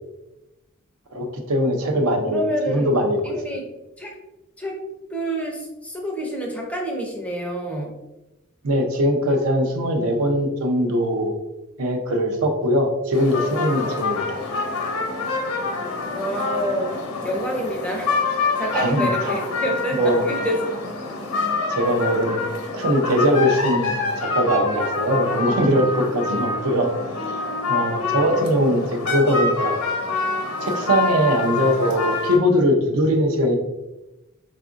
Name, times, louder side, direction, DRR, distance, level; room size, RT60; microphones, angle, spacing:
voice 1, 1.1-3.4 8.6-11.3 11.8-14.4 18.7-19.1 20.0-20.2 21.7-22.4 22.7-26.9 27.7-29.7 30.6-33.6, equal, 75° right, 2 dB, 0.5 m, -21 dB
voice 2, 2.0-2.9 3.2-3.6 4.0-4.2 4.6-4.8 5.1-8.0 16.1-20.6, right 1 dB, 5° left, 0 dB, 0.4 m, -28 dB
sound 1, 13.1-32.4, left 4 dB, 85° left, 0.8 m, -26 dB
3.6 x 2.4 x 2.4 m, 0.99 s
head